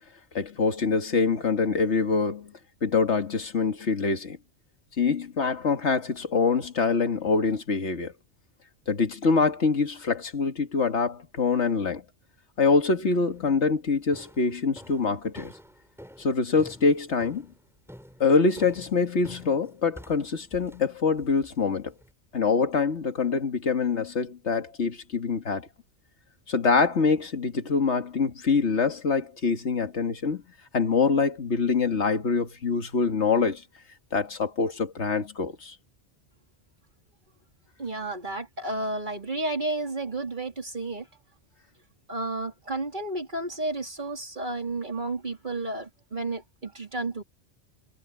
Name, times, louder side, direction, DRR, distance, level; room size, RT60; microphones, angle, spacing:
voice 1, 0.3-2.5 2.8-4.4 5.0-8.1 8.9-12.0 12.6-15.5 16.2-17.5 18.2-21.9 22.3-25.7 26.5-30.4 30.7-33.6 34.1-35.8, left 4 dB, 70° left, 2.1 m, -25 dB
sound 1, 13.3-13.6 14.1-22.1, equal, ahead, 5.7 m, -49 dB
voice 2, 37.8-41.1 42.1-47.2, right 2 dB, 40° right, 3.6 m, -32 dB
omnidirectional pair, 1.2 m